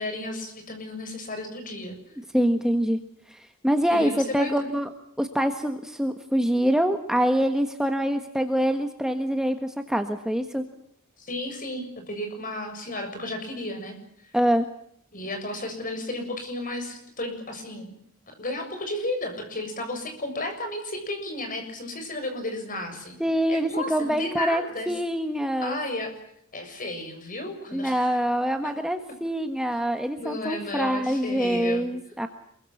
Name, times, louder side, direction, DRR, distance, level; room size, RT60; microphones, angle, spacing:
voice 1, 0.0-1.9 3.9-4.7 11.2-14.0 14.2-14.3 15.1-18.0 18.3-23.2 23.5-24.9 25.6-26.1 26.5-28.2 28.6-28.7 30.2-31.8, left 1 dB, 40° left, 6 dB, 7.0 m, -33 dB
voice 2, 2.3-3.0 3.3-4.9 5.2-10.6 14.3-14.6 23.2-25.8 27.7-32.3, equal, 5° right, 6 dB, 1.5 m, -25 dB
27.0 x 23.0 x 7.2 m, 0.72 s
head